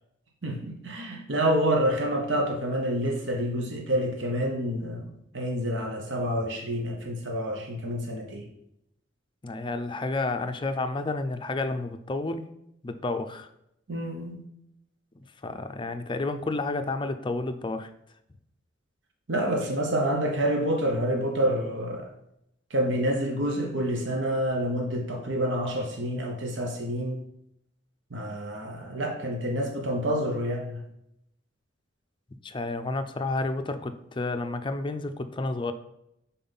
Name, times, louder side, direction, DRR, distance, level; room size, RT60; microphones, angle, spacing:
voice 1, 0.4-5.1 5.3-8.4 13.9-14.4 19.3-22.1 22.7-27.2 28.1-30.8, equal, 70° right, 1 dB, 1.2 m, -28 dB
voice 2, 9.4-12.5 12.8-13.5 15.4-17.9 32.4-35.7, left 2 dB, 25° left, 8 dB, 0.5 m, -30 dB
5.7 x 4.3 x 5.5 m, 0.79 s
head